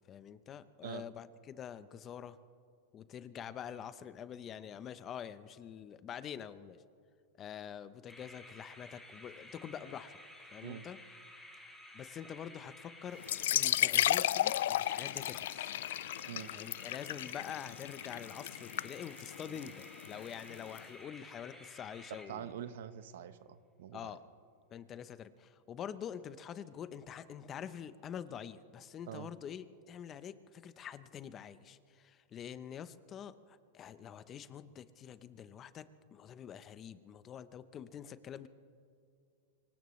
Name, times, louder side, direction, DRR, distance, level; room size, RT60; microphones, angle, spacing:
voice 1, 0.1-2.4 2.9-6.8 7.4-10.2 10.5-11.0 11.9-13.2 13.5-15.7 16.5-22.5 23.9-24.2 24.7-35.9 36.1-38.5, left 8 dB, 30° left, 14 dB, 0.7 m, -46 dB
sound 1, 8.1-22.7, left 1 dB, ahead, 4.0 m, -54 dB
sound 2, 13.2-20.8, left 13 dB, 75° left, 0.3 m, -34 dB
voice 2, 22.3-24.1 29.1-29.3, right 10 dB, 75° right, 13 dB, 0.9 m, -45 dB
25.0 x 17.5 x 3.2 m, 2.4 s
supercardioid pair, 135°, 0 cm